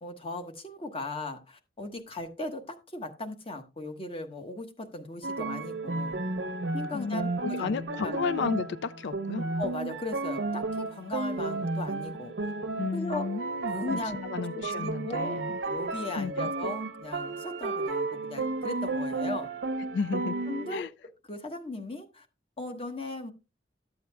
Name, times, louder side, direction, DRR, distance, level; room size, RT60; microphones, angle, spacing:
voice 1, 0.0-6.2 6.7-8.2 9.6-12.3 12.9-13.3 13.7-14.3 14.8-19.5 20.5-20.9 21.3-22.3 22.6-23.3, left 2 dB, 30° left, 1.2 m, -38 dB
sound 1, 5.2-20.8, right 3 dB, 75° right, 0.7 m, -33 dB
voice 2, 6.9-9.4 12.8-14.0 14.3-15.6 16.2-16.5 19.9-20.4 20.7-20.9, left 5 dB, 70° left, 0.4 m, -33 dB
13.0 x 7.9 x 2.2 m
head